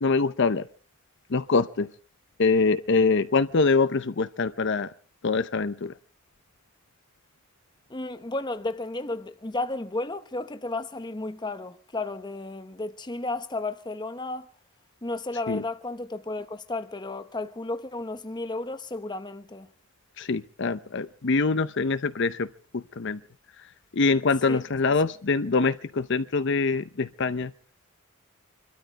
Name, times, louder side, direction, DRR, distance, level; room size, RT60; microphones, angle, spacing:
voice 1, 0.0-0.7 1.3-1.9 2.4-4.9 5.2-5.9 15.5-15.6 20.2-23.2 23.9-27.5, left 4 dB, 55° left, 0.7 m, -24 dB
voice 2, 7.9-14.5 15.0-19.7 24.4-24.6, left 2 dB, 20° left, 0.9 m, -33 dB
26.0 x 13.0 x 4.1 m
head